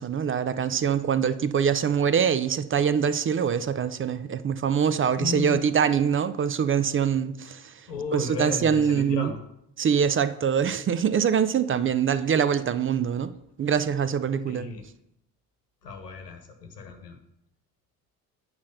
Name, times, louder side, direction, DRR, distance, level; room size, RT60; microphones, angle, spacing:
voice 1, 0.0-7.7 8.1-9.3 9.8-13.3 13.6-14.7, right 7 dB, 25° right, 13 dB, 0.5 m, -24 dB
voice 2, 5.1-5.6 7.9-9.4 14.5-14.9 15.8-17.2, left 4 dB, 90° left, 4 dB, 1.2 m, -34 dB
8.6 x 4.4 x 6.5 m, 0.78 s
hypercardioid pair, 55°, 47 cm